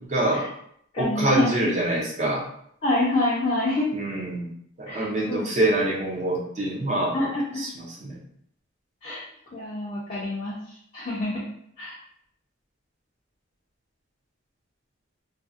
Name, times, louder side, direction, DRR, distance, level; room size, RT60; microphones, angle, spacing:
voice 1, 0.1-0.5 1.0-2.4 3.9-4.5 4.8-7.2 7.6-8.2, right 1 dB, 35° right, -3 dB, 0.5 m, -25 dB
voice 2, 0.9-1.5 2.8-3.9 4.9-5.5 7.1-7.6 9.0-9.2 9.5-10.6 10.9-11.4 11.8-12.0, left 2 dB, 35° left, -6 dB, 0.4 m, -26 dB
2.5 x 2.0 x 2.4 m, 0.68 s
head